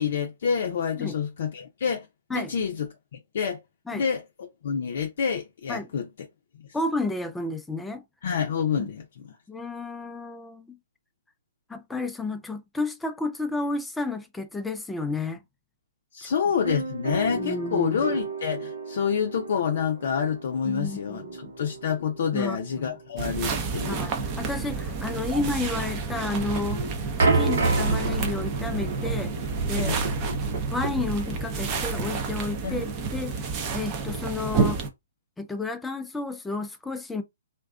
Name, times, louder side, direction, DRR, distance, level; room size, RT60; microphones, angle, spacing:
voice 1, 0.0-2.1 2.3-3.6 3.9-6.1 8.2-9.3 16.1-24.1 25.1-25.2 29.8-30.0 32.6-32.8, left 7 dB, 60° left, 0.5 m, -28 dB
voice 2, 6.7-8.0 8.8-8.9 9.5-10.8 11.7-15.4 16.2-16.3 17.3-18.1 20.7-21.5 22.3-23.0 23.9-26.8 27.2-29.3 29.7-30.0 30.7-33.4 33.7-34.8 35.4-37.2, left 2 dB, 5° left, 0.4 m, -31 dB
sound 1, 16.6-24.7, right 3 dB, 90° right, 0.9 m, -37 dB
sound 2, 23.2-34.9, right 4 dB, 30° right, 0.7 m, -30 dB
sound 3, 27.2-32.6, right 3 dB, 65° right, 1.2 m, -27 dB
2.5 x 2.2 x 2.3 m
hypercardioid pair, 130°, 0 cm